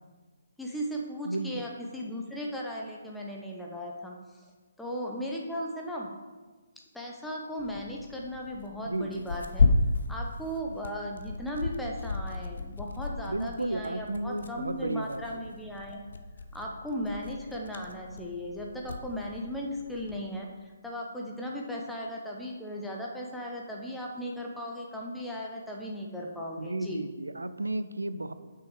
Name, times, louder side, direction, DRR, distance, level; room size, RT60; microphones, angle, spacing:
voice 1, 0.6-4.5 4.8-6.1 6.9-9.7 10.1-16.0 16.5-27.0, equal, 5° left, -2 dB, 0.7 m, -37 dB
voice 2, 1.2-1.6 8.8-9.3 13.3-15.4 26.6-28.3, right 2 dB, 75° right, 12 dB, 0.4 m, -33 dB
Tearing, 7.6-20.2, left 3 dB, 60° left, 0.6 m, -33 dB
6.2 x 5.6 x 4.7 m, 1.3 s
figure-of-eight pair, 135°, 0 cm